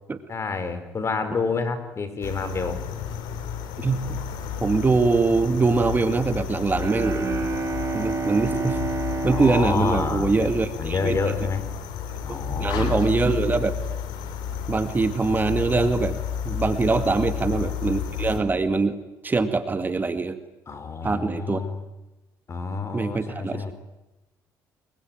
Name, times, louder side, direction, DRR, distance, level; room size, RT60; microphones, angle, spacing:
voice 1, 0.3-2.8 9.2-10.5 10.8-11.7 12.2-13.0 17.1-17.2 17.5-17.7 20.7-21.8 22.5-23.7, left 4 dB, 40° left, 10 dB, 5.4 m, -29 dB
sound 1, 2.2-18.4, left 7 dB, 85° left, 4.4 m, -31 dB
voice 2, 3.8-4.2 4.6-7.3 7.9-8.8 9.2-11.2 12.3-13.8 14.7-16.2 16.5-19.0 19.2-20.4 21.0-21.6 22.9-23.7, right 3 dB, 25° right, 10 dB, 2.1 m, -23 dB
Bowed string instrument, 6.7-11.0, right 3 dB, 40° right, 5.8 m, -29 dB
28.5 x 22.5 x 9.2 m, 1.0 s
supercardioid pair, 80°, 7 cm